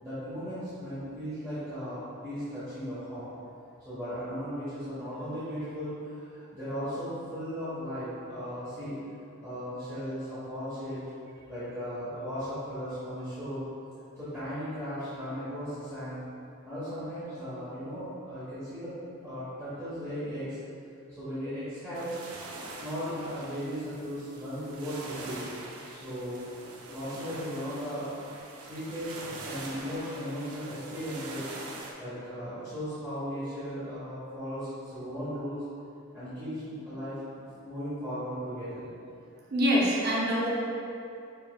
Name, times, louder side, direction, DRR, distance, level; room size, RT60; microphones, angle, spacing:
voice 1, 0.0-3.3 3.8-9.0 9.4-11.0 11.5-13.6 14.2-16.2 16.6-18.9 19.2-20.6 21.2-22.4 22.8-25.4 25.9-26.4 26.9-28.1 28.5-29.1 29.4-31.5 32.0-35.6 36.1-37.1 37.6-38.9, equal, 15° right, -15 dB, 1.2 m, -36 dB
sound 1, 21.9-31.9, right 2 dB, 90° right, 0.6 m, -44 dB
voice 2, 39.5-40.5, equal, 45° right, -5 dB, 0.7 m, -25 dB
6.5 x 3.4 x 2.3 m, 2.7 s
head